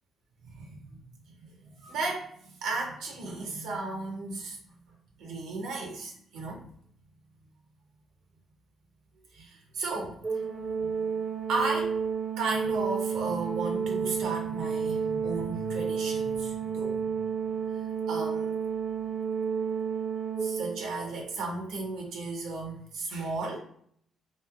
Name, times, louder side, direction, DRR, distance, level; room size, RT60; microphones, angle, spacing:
voice 1, 0.4-1.0 1.6-4.6 5.2-6.6 9.3-10.2 10.8-11.0 11.5-11.9 12.4-17.1 17.8-18.5 20.4-23.6, right 3 dB, 90° right, 1 dB, 0.6 m, -34 dB
Organ, 10.2-21.1, right 6 dB, 30° right, 0.5 m, -31 dB
3.0 x 2.5 x 2.3 m, 0.64 s
cardioid pair, 90°, 0 cm